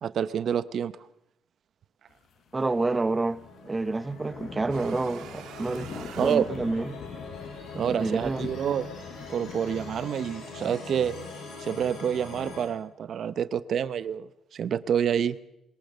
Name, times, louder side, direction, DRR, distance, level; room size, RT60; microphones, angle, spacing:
voice 1, 0.0-0.9 6.2-6.6 7.8-8.9 9.3-11.2 11.6-15.4, right 8 dB, 55° right, 0.7 m, -28 dB
sound 1, 2.1-2.9 3.2-10.0, left 8 dB, 55° left, 0.7 m, -44 dB
voice 2, 2.5-7.0 7.7-8.5, right 3 dB, 20° right, 0.8 m, -29 dB
sound 2, 2.7-12.7, left 4 dB, 85° left, 7.8 m, -43 dB
sound 3, 4.7-7.2, right 9 dB, 85° right, 2.1 m, -47 dB
22.0 x 18.5 x 6.7 m
cardioid pair, 130°, 0 cm